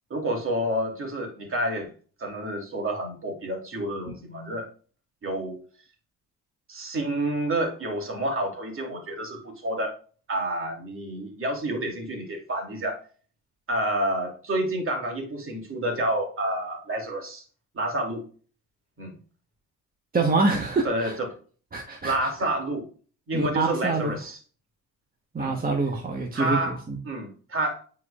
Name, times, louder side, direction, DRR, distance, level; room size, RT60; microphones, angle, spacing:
voice 1, 0.1-1.9 2.2-4.7 5.2-5.6 6.7-9.9 10.3-13.0 13.7-17.4 17.7-18.2 19.0-19.1 20.8-21.3 22.0-22.9 23.3-24.4 25.4-25.6 26.3-27.8, right 1 dB, 45° right, 2.8 m, -29 dB
voice 2, 20.1-21.2 21.7-22.3 23.3-24.2 25.3-27.0, right 3 dB, 30° right, 1.3 m, -26 dB
9.3 x 4.6 x 2.5 m
cardioid pair, 90°, 30 cm